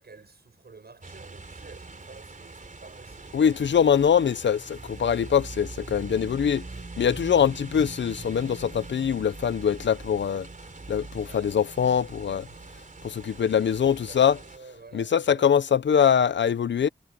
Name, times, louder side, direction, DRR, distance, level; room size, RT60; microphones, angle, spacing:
voice 1, 0.0-3.6 7.1-7.5 11.2-11.5 13.5-15.5, right 4 dB, 60° right, 7.9 m, -50 dB
sound 1, 1.0-14.6, right 3 dB, 45° right, 3.8 m, -42 dB
voice 2, 3.3-6.7 7.0-10.5 10.9-12.5 13.0-14.4 14.9-16.9, left 8 dB, 90° left, 0.7 m, -23 dB
cardioid pair, 60°, 18 cm